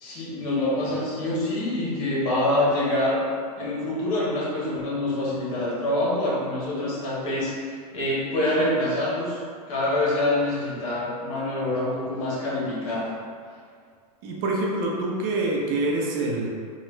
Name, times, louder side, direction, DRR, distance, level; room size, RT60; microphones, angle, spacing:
voice 1, 0.0-3.2 3.6-9.4 9.7-13.2, left 1 dB, 60° left, -5 dB, 1.2 m, -26 dB
voice 2, 14.2-16.5, right 2 dB, 45° right, -2 dB, 0.7 m, -26 dB
3.1 x 2.3 x 3.1 m, 2.1 s
hypercardioid pair, 105°, 21 cm